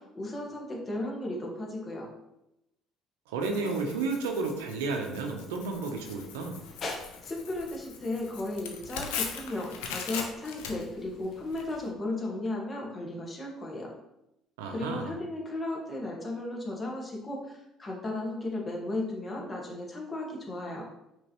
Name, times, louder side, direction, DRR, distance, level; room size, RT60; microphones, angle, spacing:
voice 1, 0.1-2.1 7.2-13.9 14.7-20.8, left 2 dB, 30° left, -1 dB, 1.4 m, -35 dB
voice 2, 3.3-6.6 14.6-15.1, right 4 dB, 85° right, 3 dB, 0.6 m, -32 dB
Tearing, 3.4-11.6, left 6 dB, 85° left, 0.6 m, -40 dB
sound 1, 5.9-11.9, left 2 dB, 45° left, 0.9 m, -46 dB
5.3 x 3.1 x 2.9 m, 0.87 s
hypercardioid pair, 70°, 0 cm